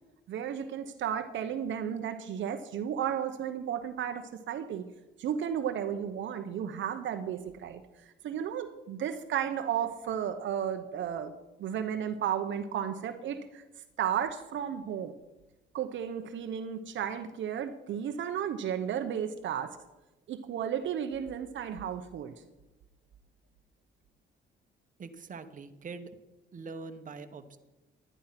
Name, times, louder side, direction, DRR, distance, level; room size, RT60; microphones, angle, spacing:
voice 1, 0.3-4.8 5.2-13.6 14.0-15.1 15.7-19.8 20.3-22.3, right 9 dB, 70° right, 7 dB, 0.9 m, -33 dB
voice 2, 25.0-26.1 26.5-27.6, right 4 dB, 40° right, 8 dB, 1.2 m, -43 dB
11.5 x 10.5 x 5.8 m, 1.1 s
cardioid pair, 90°, 20 cm